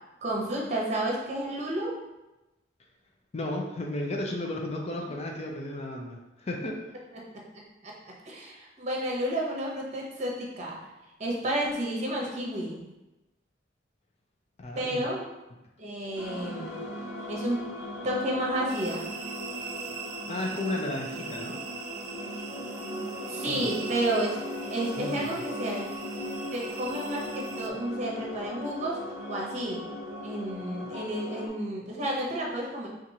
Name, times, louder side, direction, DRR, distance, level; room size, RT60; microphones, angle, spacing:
voice 1, 0.2-2.0 7.1-7.4 7.8-7.9 8.3-10.8 11.2-12.8 14.8-15.2 15.8-16.7 17.3-17.6 18.0-19.1 23.3-24.4 24.7-25.9 26.5-29.8 30.2-32.9, right 1 dB, 40° right, -2 dB, 0.8 m, -31 dB
voice 2, 3.3-7.0 14.6-15.1 20.3-21.6 23.5-23.7 25.0-25.4, left 1 dB, 35° left, 1 dB, 0.5 m, -34 dB
sound 1, 16.2-31.5, left 1 dB, 90° left, 0.7 m, -38 dB
sound 2, 18.7-27.7, right 6 dB, 55° right, 0.3 m, -42 dB
4.3 x 2.5 x 2.7 m, 0.99 s
head